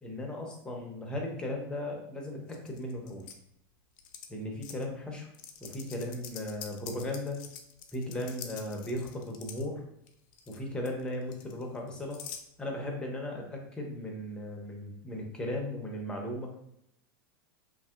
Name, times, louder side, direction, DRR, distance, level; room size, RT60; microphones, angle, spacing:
voice 1, 0.0-3.3 4.3-5.3 5.6-7.4 7.9-9.8 10.5-12.2 12.6-16.5, left 1 dB, 5° left, 0 dB, 0.5 m, -36 dB
sound 1, 2.5-3.3 4.0-4.3 4.6-4.8 5.3-9.6 10.1-10.6 10.8-12.4, left 8 dB, 60° left, 0.4 m, -46 dB
2.8 x 2.6 x 2.3 m, 0.79 s
supercardioid pair, 140°, 12 cm